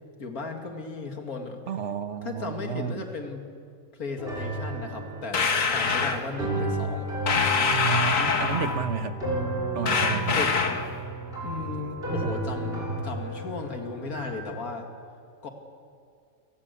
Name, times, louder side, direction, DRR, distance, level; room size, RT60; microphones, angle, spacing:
voice 1, 0.2-1.6 2.2-3.5 4.0-7.1 10.3-10.9 11.4-14.9 15.4-15.5, left 4 dB, 80° left, 4 dB, 2.5 m, -36 dB
voice 2, 1.7-3.0 7.7-9.2 9.7-10.4, right 7 dB, 55° right, 10 dB, 1.3 m, -31 dB
sound 1, 4.2-14.3, right 1 dB, 40° right, 5.8 m, -33 dB
sound 2, 5.3-6.2 7.3-8.8 9.9-10.9, left 5 dB, 65° left, 1.8 m, -24 dB
28.5 x 15.5 x 8.3 m, 2.4 s
omnidirectional pair, 1.5 m